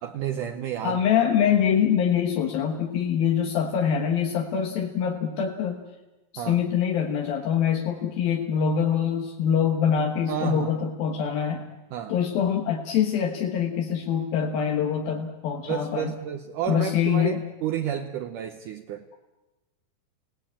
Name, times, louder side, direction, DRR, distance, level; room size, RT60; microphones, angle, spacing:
voice 1, 0.0-1.0 6.4-6.6 10.3-10.7 11.9-12.2 15.7-19.0, right 9 dB, 70° right, 5 dB, 2.3 m, -31 dB
voice 2, 0.8-5.8 6.3-11.6 12.1-16.1 16.7-17.4, left 8 dB, 80° left, 2 dB, 3.2 m, -24 dB
28.5 x 18.0 x 8.8 m, 1.1 s
omnidirectional pair, 4.2 m